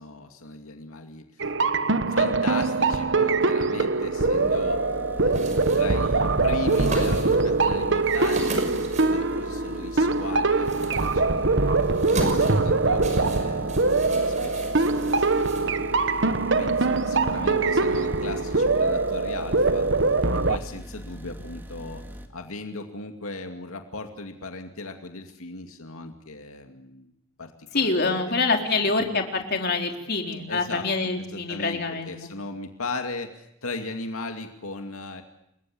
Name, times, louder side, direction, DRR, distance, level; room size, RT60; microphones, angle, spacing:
voice 1, 0.0-1.5 2.1-4.8 5.1-12.0 12.4-16.0 16.6-19.9 20.3-22.0 22.3-27.1 27.4-28.4 28.8-28.9 30.5-35.2, left 2 dB, 90° left, 4 dB, 2.5 m, -38 dB
sound 1, 1.4-20.6, right 3 dB, 60° right, 1.2 m, -23 dB
sound 2, 3.8-22.3, equal, 10° right, 2.6 m, -41 dB
sound 3, 5.3-16.2, right 1 dB, 35° right, 6.1 m, -38 dB
voice 2, 27.7-32.1, left 3 dB, 50° left, 3 dB, 4.0 m, -25 dB
30.0 x 22.0 x 8.7 m, 0.81 s
head